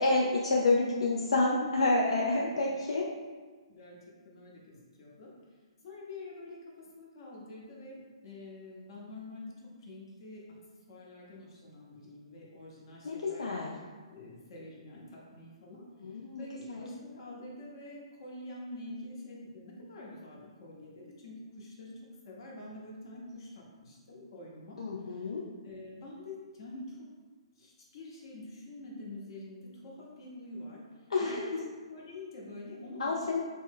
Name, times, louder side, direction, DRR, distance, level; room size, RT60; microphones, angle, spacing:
voice 1, 0.0-3.0 13.0-13.7 16.0-16.9 24.8-25.4 31.1-31.6 33.0-33.4, left 2 dB, 75° left, -3 dB, 0.3 m, -29 dB
voice 2, 4.2-5.3 5.8-10.4 10.9-13.5 14.1-15.8 16.4-21.9 22.2-24.8 25.1-25.3 25.6-27.1 27.6-30.8 31.2-31.6 31.9-33.1, left 2 dB, 50° left, -3 dB, 0.9 m, -46 dB
3.1 x 2.0 x 3.5 m, 1.4 s
figure-of-eight pair, 130°, 3 cm